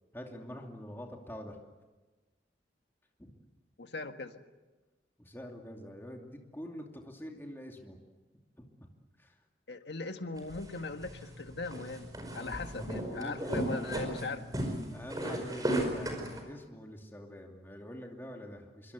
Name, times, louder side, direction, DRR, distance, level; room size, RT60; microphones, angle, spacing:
voice 1, 0.1-1.6 3.2-3.3 5.2-8.0 8.6-8.7 9.2-9.4 12.3-12.6 13.1-13.6 14.9-18.9, equal, 15° left, 1 dB, 2.6 m, -45 dB
voice 2, 3.8-4.4 9.7-12.1 12.3-14.6, left 3 dB, 80° left, 7 dB, 1.7 m, -39 dB
sound 1, 10.4-16.4, right 1 dB, 20° right, 5.1 m, -36 dB
25.5 x 24.0 x 8.2 m, 1.2 s
head